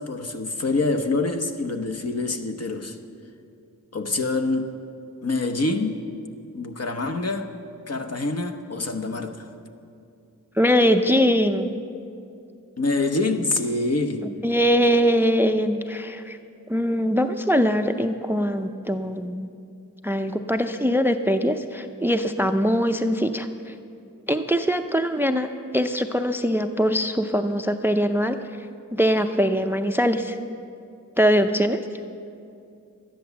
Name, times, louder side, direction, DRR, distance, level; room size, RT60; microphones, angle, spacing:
voice 1, 0.0-3.0 3.9-4.7 5.2-6.1 6.5-7.5 7.9-9.5 12.8-14.3, left 2 dB, 50° left, 5 dB, 1.0 m, -26 dB
voice 2, 10.6-11.7 14.4-16.4 16.7-19.5 20.0-23.7 24.3-28.4 28.9-30.4 31.2-31.8, equal, 5° right, 8 dB, 0.5 m, -22 dB
12.5 x 10.5 x 7.0 m, 2.5 s
wide cardioid pair, 60°, 33 cm